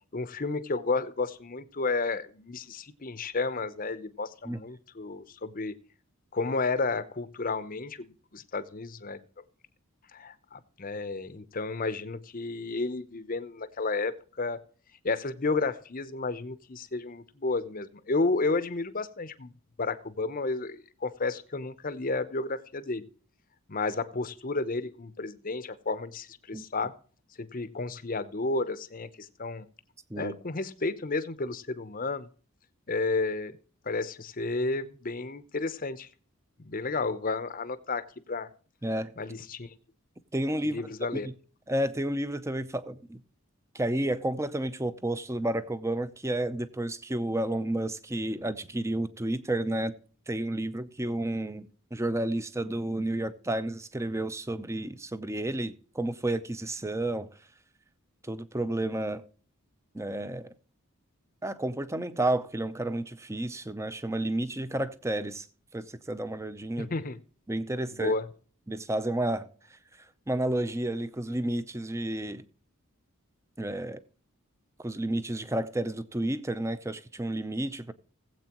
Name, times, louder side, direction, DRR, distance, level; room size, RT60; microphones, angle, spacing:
voice 1, 0.1-5.7 6.3-9.2 10.1-14.6 15.0-19.5 19.8-23.1 23.7-26.9 27.4-29.7 30.2-32.3 32.9-33.6 33.8-36.1 36.6-38.5 39.2-39.7 40.7-41.3 66.8-67.2 67.9-68.3, left 3 dB, 40° left, 0.8 m, -32 dB
voice 2, 40.3-40.8 41.2-41.3 41.7-43.2 43.7-49.9 50.3-57.3 58.2-59.2 59.9-60.5 61.4-65.5 65.7-66.9 67.5-68.1 68.7-69.8 70.3-72.4 73.6-74.0 74.8-77.9, right 1 dB, 15° right, 0.6 m, -31 dB
18.5 x 8.1 x 3.0 m
head